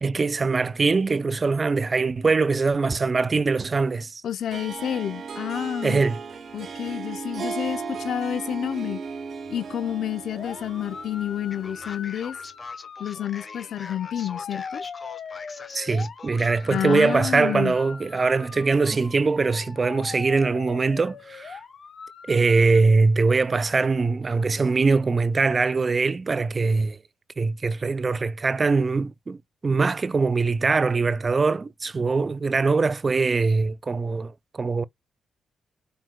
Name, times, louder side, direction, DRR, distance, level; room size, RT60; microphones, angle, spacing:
voice 1, 0.0-4.2 5.8-6.2 15.7-21.6 22.3-27.0 27.4-29.4 29.6-34.8, right 4 dB, 35° right, 0.3 m, -22 dB
voice 2, 4.2-6.0 6.5-9.0 9.5-12.4 13.0-14.8 16.7-17.8, left 10 dB, 75° left, 0.5 m, -29 dB
Harp, 4.5-12.2, right 5 dB, 60° right, 0.8 m, -36 dB
sound 1, 10.3-22.8, left 6 dB, 55° left, 0.8 m, -41 dB
Male speech man speaking, 11.5-17.3, left 4 dB, 35° left, 1.1 m, -43 dB
4.3 x 3.8 x 2.2 m
cardioid pair, 90°, 0 cm